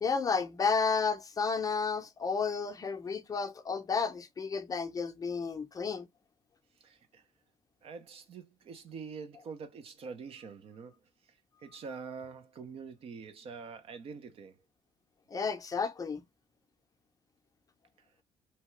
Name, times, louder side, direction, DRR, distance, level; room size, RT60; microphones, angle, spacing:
voice 1, 0.0-6.1 15.3-16.2, left 5 dB, 30° left, 0.6 m, -32 dB
voice 2, 6.8-7.2 7.8-14.6, right 5 dB, 55° right, 0.7 m, -45 dB
2.9 x 2.3 x 3.0 m
cardioid pair, 95°, 12 cm